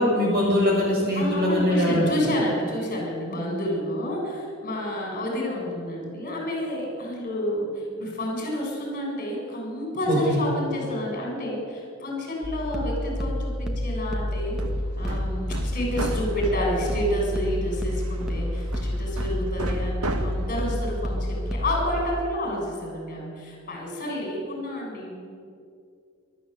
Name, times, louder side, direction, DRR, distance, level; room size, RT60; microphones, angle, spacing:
voice 1, 0.0-2.1 10.1-10.4, left 1 dB, 45° right, -2 dB, 7.2 m, -22 dB
voice 2, 1.2-14.6 15.0-25.2, equal, 40° left, -1 dB, 6.9 m, -29 dB
sound 1, 12.4-22.0, left 1 dB, 5° right, 1.9 m, -29 dB
Hammer, 14.3-22.1, right 1 dB, 90° right, 1.8 m, -36 dB
27.0 x 13.0 x 8.2 m, 2.3 s
head